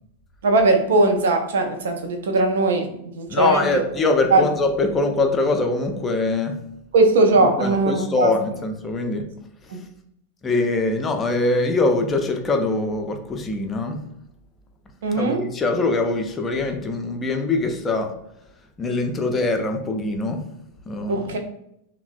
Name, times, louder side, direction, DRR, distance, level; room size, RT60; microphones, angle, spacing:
voice 1, 0.4-3.8 4.3-4.5 6.9-8.3 9.7-9.9 15.0-15.4 21.1-21.4, right 2 dB, 60° right, 5 dB, 0.4 m, -19 dB
voice 2, 3.3-6.5 7.4-9.2 9.6-9.8 10.4-14.0 15.1-18.1 18.8-20.4 20.9-21.3, left 3 dB, 20° left, 4 dB, 0.4 m, -23 dB
3.1 x 2.0 x 2.3 m, 0.76 s
figure-of-eight pair, 90°, 0 cm